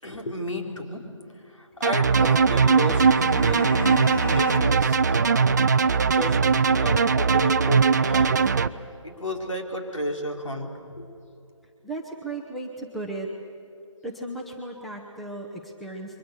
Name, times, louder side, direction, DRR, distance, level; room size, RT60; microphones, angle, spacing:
voice 1, 0.0-5.8 6.1-8.5 9.0-11.1, equal, 70° left, 2 dB, 4.3 m, -32 dB
Bowed string instrument, 1.8-5.0, left 2 dB, 40° left, 2.5 m, -33 dB
sound 1, 1.8-8.7, right 5 dB, 35° right, 0.5 m, -20 dB
voice 2, 11.8-13.3 14.0-16.2, right 2 dB, ahead, -2 dB, 0.7 m, -35 dB
29.5 x 23.5 x 6.8 m, 2.7 s
figure-of-eight pair, 155°, 17 cm